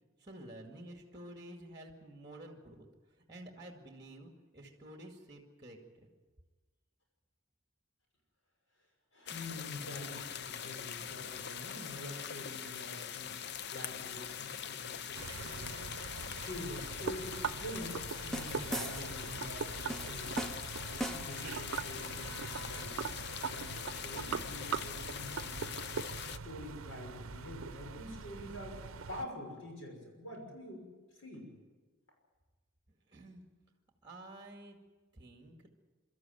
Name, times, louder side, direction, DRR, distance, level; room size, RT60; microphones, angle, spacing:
voice 1, 0.2-2.9 3.2-6.1 33.1-33.4 34.0-34.8 35.1-35.7, right 1 dB, 20° right, 3 dB, 2.2 m, -51 dB
voice 2, 9.1-20.4 20.7-23.1 23.5-25.9 26.3-30.9 31.1-31.5, left 1 dB, 75° left, 0 dB, 6.1 m, -47 dB
sound 1, 9.3-26.4, left 8 dB, 55° left, 0.6 m, -43 dB
sound 2, 15.1-29.2, right 5 dB, 85° right, 0.6 m, -42 dB
sound 3, 18.1-19.3 19.9-21.5, right 1 dB, ahead, 0.7 m, -40 dB
24.5 x 13.5 x 9.3 m, 1.3 s
head